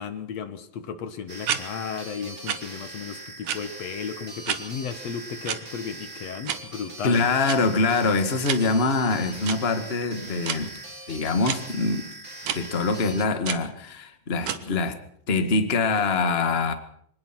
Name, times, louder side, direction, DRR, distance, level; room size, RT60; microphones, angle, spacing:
voice 1, 0.0-7.3, left 6 dB, 55° left, 2.2 m, -34 dB
sound 1, 1.3-13.2, right 2 dB, 20° right, 3.5 m, -41 dB
sound 2, 1.4-1.6 2.5-2.6 3.4-3.6 4.4-4.6 5.4-5.6 6.4-6.6 7.5-7.6 8.4-8.6 9.4-9.6 10.4-10.6 11.5-11.6 12.4-12.6 13.5-13.6 14.4-14.6, right 10 dB, 65° right, 2.7 m, -28 dB
voice 2, 7.0-10.7 11.1-12.1 12.5-15.0 15.3-16.7, left 3 dB, 25° left, 1.3 m, -24 dB
25.0 x 19.0 x 6.1 m
omnidirectional pair, 4.0 m